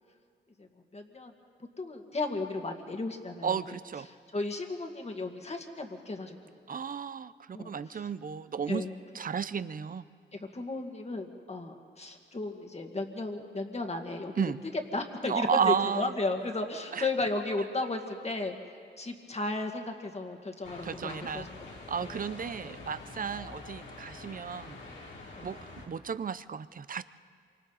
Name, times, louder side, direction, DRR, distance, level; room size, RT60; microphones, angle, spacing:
voice 1, 0.6-1.3 1.8-3.8 4.1-6.4 6.7-6.8 7.5-8.1 8.7-8.9 10.3-14.4 14.9-18.6 19.0-21.5 21.8-22.2 25.4-25.5, left 2 dB, 35° left, 3 dB, 2.0 m, -35 dB
voice 2, 3.4-4.1 6.7-8.8 9.1-10.0 14.4-14.6 15.2-16.1 16.9-17.1 20.8-21.5 21.9-24.8 25.4-27.0, right 7 dB, 45° right, 14 dB, 0.6 m, -33 dB
sound 1, 20.6-25.9, left 3 dB, 85° left, 3.2 m, -46 dB
27.5 x 25.0 x 4.2 m, 2.1 s
cardioid pair, 85°, 19 cm